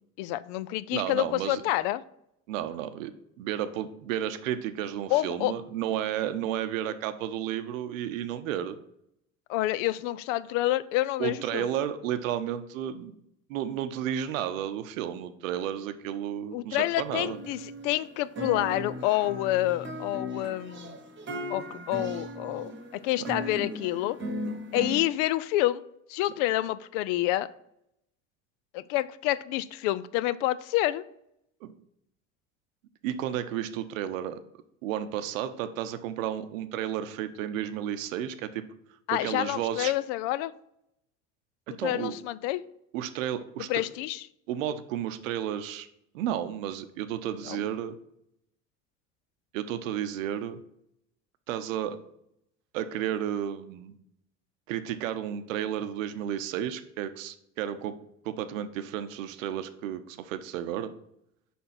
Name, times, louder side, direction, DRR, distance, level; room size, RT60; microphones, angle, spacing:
voice 1, 0.2-2.0 5.1-5.5 9.5-11.7 16.5-21.0 21.5-24.2 24.7-25.8 26.1-27.5 28.7-31.0 39.1-40.5 41.8-42.6 43.7-44.2 47.5-47.6, left 15 dB, 60° left, 0.5 m, -28 dB
voice 2, 0.9-1.6 2.5-8.8 11.2-13.1 13.5-17.4 31.6-31.7 33.0-34.4 34.8-38.6 39.1-39.9 41.8-42.1 42.9-43.8 44.5-45.9 46.1-47.9 49.5-50.6 51.5-52.0 52.7-53.9 54.7-58.0 58.2-60.9, right 10 dB, 75° right, 0.7 m, -32 dB
sound 1, 17.0-18.1 18.4-25.0, equal, 30° right, 1.1 m, -37 dB
5.4 x 4.3 x 5.7 m
hypercardioid pair, 65°, 40 cm